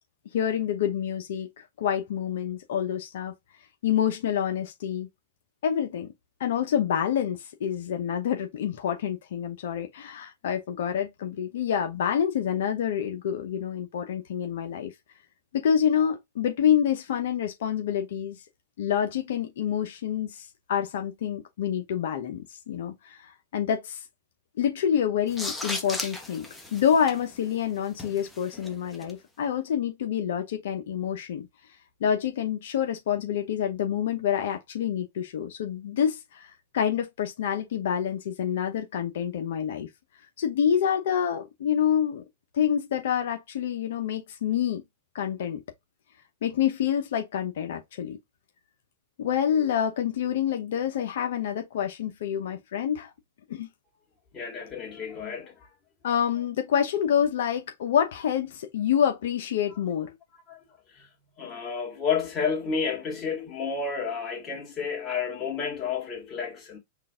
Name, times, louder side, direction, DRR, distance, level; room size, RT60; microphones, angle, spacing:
voice 1, 0.3-3.3 3.8-5.1 5.6-6.1 6.4-14.9 15.5-18.4 18.8-24.0 24.6-31.5 32.0-39.9 40.4-42.2 42.5-44.8 45.1-45.6 46.4-48.2 49.2-53.1 53.5-53.7 56.0-60.1, left 9 dB, 75° left, 0.8 m, -27 dB
sound 1, 25.3-29.1, left 2 dB, 5° left, 1.0 m, -37 dB
voice 2, 54.3-55.7 60.1-60.2 60.5-61.1 61.4-66.8, left 6 dB, 25° left, 2.0 m, -31 dB
3.8 x 2.5 x 3.6 m
hypercardioid pair, 125°, 0 cm